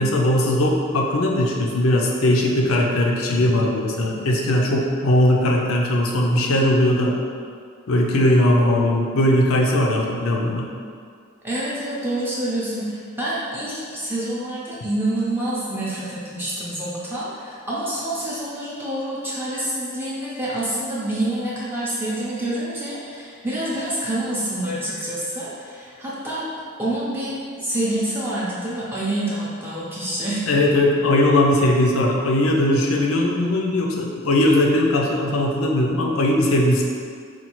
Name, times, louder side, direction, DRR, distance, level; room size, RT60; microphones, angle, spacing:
voice 1, 0.0-7.2 7.9-10.7 30.5-36.8, left 1 dB, 85° left, 0 dB, 0.5 m, -19 dB
voice 2, 11.4-26.5 26.8-30.4, right 1 dB, 10° right, -8 dB, 0.5 m, -27 dB
4.3 x 2.3 x 2.9 m, 2.1 s
head